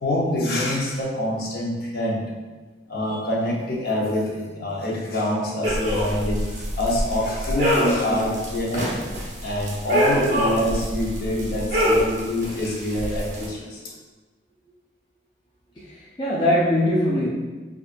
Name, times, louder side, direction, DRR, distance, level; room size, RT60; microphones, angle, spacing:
voice 1, 0.0-2.3 2.9-8.9 9.4-13.9, left 1 dB, 55° left, -3 dB, 0.7 m, -25 dB
sound 1, 5.6-13.5, equal, 45° right, 0.7 m, -25 dB
voice 2, 15.9-17.3, left 1 dB, 25° left, -6 dB, 0.4 m, -22 dB
5.1 x 2.4 x 2.4 m, 1.3 s
head